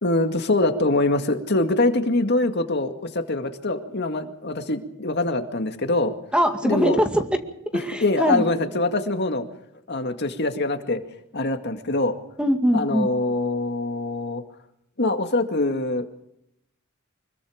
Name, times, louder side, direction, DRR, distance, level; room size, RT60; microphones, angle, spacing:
voice 1, 0.0-6.1 6.6-7.0 7.7-9.5 9.9-11.0 11.3-12.2 12.7-14.4 15.0-16.1, left 2 dB, 55° left, 6 dB, 2.1 m, -24 dB
voice 2, 6.3-7.4 7.7-8.4 12.4-13.1, equal, 5° right, 5 dB, 2.2 m, -22 dB
25.5 x 22.0 x 5.0 m, 0.79 s
head